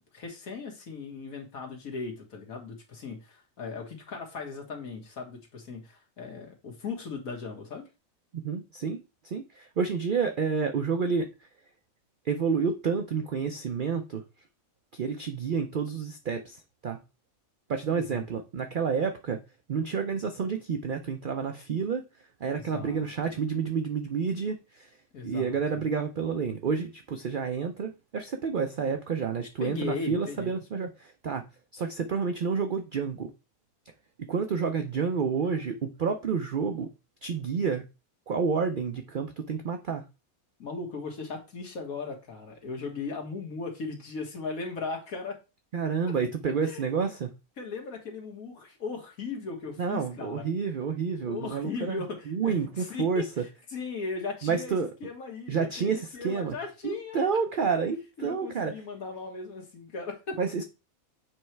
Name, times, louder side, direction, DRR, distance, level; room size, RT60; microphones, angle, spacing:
voice 1, 0.1-7.8 17.9-18.2 22.5-23.1 25.1-25.6 29.6-30.5 40.6-45.4 46.6-46.8 47.6-50.5 51.2-54.8 55.0-57.2 58.2-60.4, left 4 dB, 80° left, 2.0 m, -38 dB
voice 2, 8.3-11.3 12.2-14.2 14.9-17.0 17.7-19.4 19.7-22.0 22.4-24.9 25.2-31.4 31.7-33.3 34.3-36.9 37.2-37.8 38.3-40.0 45.7-47.3 49.8-53.4 54.4-54.9 55.5-56.5 56.8-58.7 60.4-60.6, right 5 dB, 55° right, 0.6 m, -29 dB
7.7 x 3.2 x 4.5 m
omnidirectional pair, 1.5 m